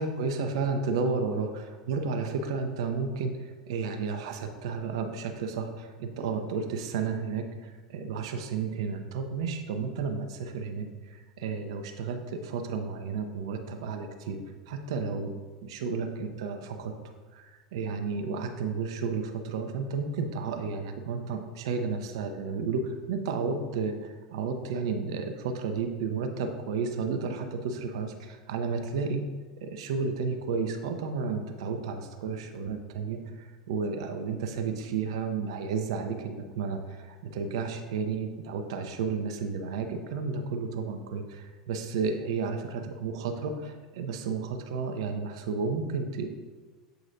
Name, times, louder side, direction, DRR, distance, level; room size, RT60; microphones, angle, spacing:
voice 1, 0.0-14.4 14.7-16.9 17.3-29.2 29.6-46.3, right 5 dB, 65° right, 6 dB, 0.6 m, -32 dB
7.9 x 4.8 x 2.6 m, 1.3 s
figure-of-eight pair, 80°, 3 cm